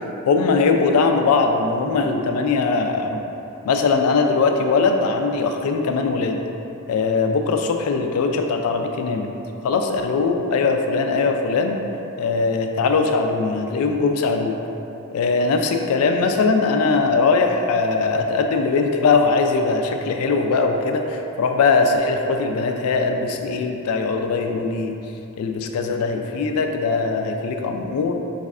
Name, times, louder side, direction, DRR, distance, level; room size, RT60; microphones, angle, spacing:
voice 1, 0.3-3.2 3.7-6.4 6.9-9.3 9.6-11.8 12.2-14.6 15.1-24.9 25.4-28.1, left 4 dB, 80° left, 4 dB, 0.3 m, -20 dB
4.1 x 3.2 x 2.4 m, 2.9 s
head